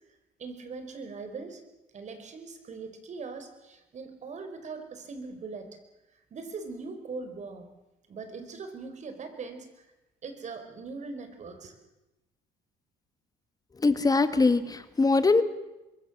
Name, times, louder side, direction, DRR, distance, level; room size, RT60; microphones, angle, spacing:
voice 1, 0.4-1.6 1.9-5.8 6.3-7.7 8.1-9.9 10.2-11.7, right 4 dB, 45° right, 8 dB, 5.1 m, -41 dB
voice 2, 13.8-15.4, left 3 dB, 20° left, 11 dB, 1.8 m, -22 dB
25.5 x 22.0 x 7.5 m, 0.99 s
cardioid pair, 110°, 17 cm